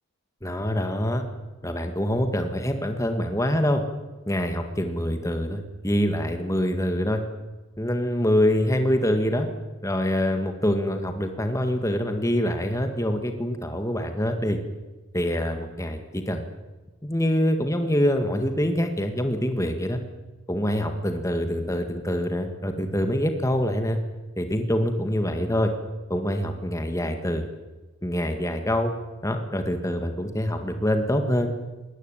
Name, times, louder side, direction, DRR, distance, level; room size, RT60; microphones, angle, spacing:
voice 1, 0.4-1.2 1.6-3.8 4.3-7.2 7.8-9.5 9.8-14.6 15.1-16.4 17.0-20.0 20.5-24.0 24.4-25.7 26.1-27.5 28.0-28.9 29.2-31.5, equal, 15° left, 6 dB, 1.9 m, -25 dB
22.0 x 18.5 x 9.1 m, 1.2 s
head